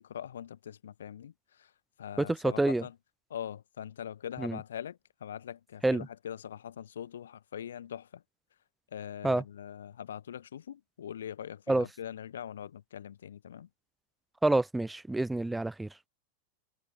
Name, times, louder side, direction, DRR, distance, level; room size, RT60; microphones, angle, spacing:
voice 1, 0.0-1.3 1.6-1.7 2.0-2.9 3.3-8.2 8.9-13.7, left 9 dB, 65° left, 1.3 m, -42 dB
voice 2, 2.2-2.8 4.4-4.6 5.8-6.1 9.2-9.4 11.7-11.9 14.4-15.9, right 2 dB, 5° right, 0.4 m, -27 dB
figure-of-eight pair, 90°, 0 cm